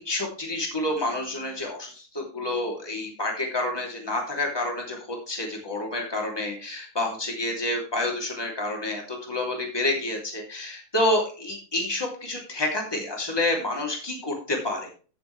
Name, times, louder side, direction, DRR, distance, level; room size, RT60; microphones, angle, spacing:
voice 1, 0.0-14.9, left 1 dB, 10° left, 0 dB, 2.6 m, -29 dB
15.5 x 7.0 x 3.3 m, 0.37 s
omnidirectional pair, 3.4 m